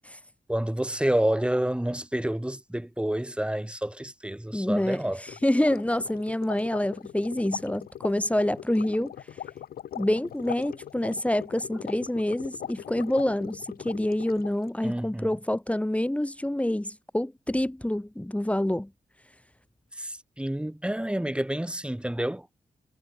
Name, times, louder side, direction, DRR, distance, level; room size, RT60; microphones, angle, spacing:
voice 1, 0.5-5.2 14.8-15.4 20.0-22.5, right 1 dB, 5° right, 4.4 m, -29 dB
voice 2, 4.5-9.1 9.9-18.9, left 1 dB, 10° left, 3.5 m, -27 dB
sound 1, 5.3-14.7, left 10 dB, 85° left, 1.6 m, -41 dB
cardioid pair, 75°, 15 cm